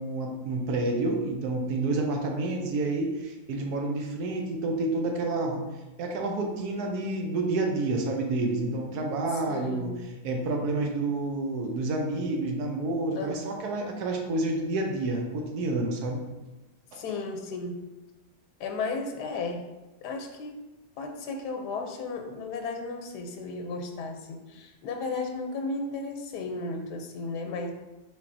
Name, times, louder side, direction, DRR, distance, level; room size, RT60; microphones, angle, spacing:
voice 1, 0.0-5.6 6.0-9.9 10.2-16.2 16.9-17.0, right 2 dB, 80° right, 2 dB, 1.2 m, -29 dB
voice 2, 9.3-10.0 13.2-13.5 16.9-17.8 18.6-19.7 20.0-20.7 21.0-27.7, left 3 dB, 90° left, 3 dB, 1.2 m, -34 dB
4.2 x 4.1 x 2.5 m, 1.1 s
omnidirectional pair, 1.7 m